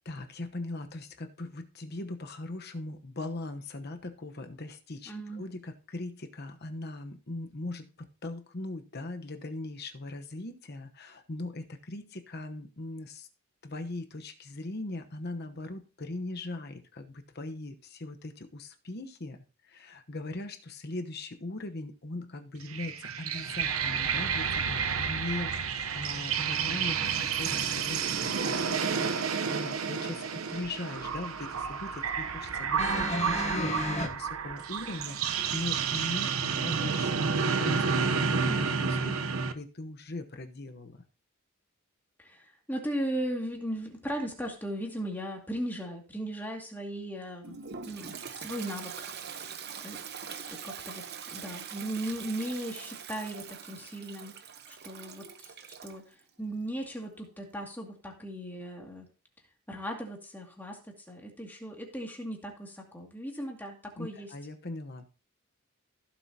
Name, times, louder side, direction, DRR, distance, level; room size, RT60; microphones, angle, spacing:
voice 1, 0.0-13.3 13.6-41.0 64.0-65.1, left 2 dB, 50° left, 7 dB, 1.0 m, -40 dB
voice 2, 5.1-5.4 38.4-38.7 42.2-47.6 47.9-49.1 49.8-50.0 50.3-54.3 54.7-55.5 55.8-59.1 59.7-64.3, right 1 dB, 10° left, 1 dB, 2.2 m, -37 dB
sound 1, 22.6-39.5, right 6 dB, 85° right, 0.9 m, -30 dB
sound 2, 32.8-34.1 35.1-35.2, left 2 dB, 30° left, 1.6 m, -32 dB
Toilet flush, 47.4-56.0, right 7 dB, 50° right, 0.9 m, -43 dB
15.5 x 7.3 x 2.8 m, 0.36 s
head